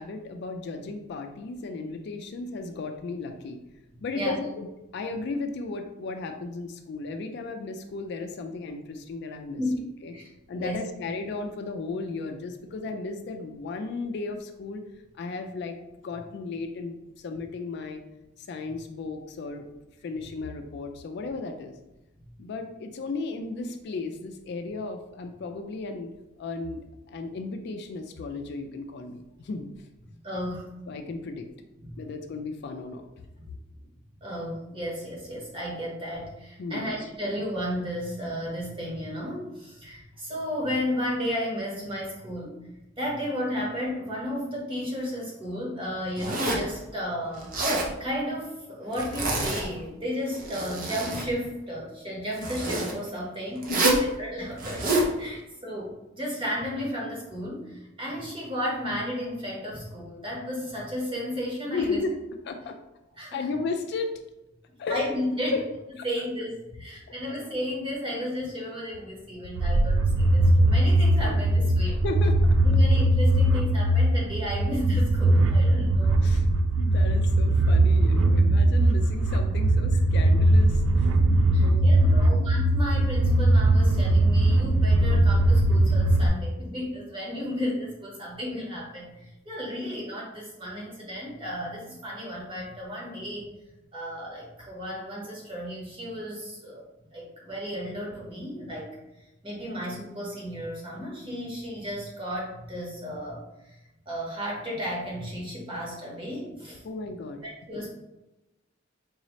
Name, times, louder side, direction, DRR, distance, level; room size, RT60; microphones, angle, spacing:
voice 1, 0.0-3.6 4.0-4.7 4.9-9.6 10.0-10.1 10.5-14.8 15.2-15.8 16.0-18.0 18.4-19.7 20.0-21.7 22.4-26.1 26.4-26.8 27.1-29.7 30.9-31.5 32.0-33.0 36.6-36.9 53.7-54.1 55.4-55.5 61.7-62.8 63.3-64.1 64.8-65.0 65.5-65.6 66.0-66.1 71.8-72.4 76.2-76.5 76.8-81.2 81.6-82.4 106.8-107.4 107.7-107.9, left 3 dB, 55° left, 6 dB, 0.3 m, -34 dB
voice 2, 30.2-30.7 31.8-32.0 34.2-42.6 43.0-47.5 48.0-53.7 54.2-54.9 55.2-62.0 63.2-63.5 64.9-65.6 66.0-72.0 72.6-76.2 81.5-93.5 93.9-96.8 97.1-98.9 99.4-103.8 104.1-106.8 107.4-107.9, equal, 25° right, -4 dB, 1.1 m, -33 dB
Zipper (clothing), 46.2-46.7 47.4-47.9 48.9-49.7 50.3-51.3 52.3-52.9 53.6-54.1 54.6-55.1, right 2 dB, 45° right, 0.7 m, -27 dB
sound 1, 69.6-86.3, right 1 dB, 80° right, 0.3 m, -20 dB
3.9 x 2.7 x 3.0 m, 0.95 s
head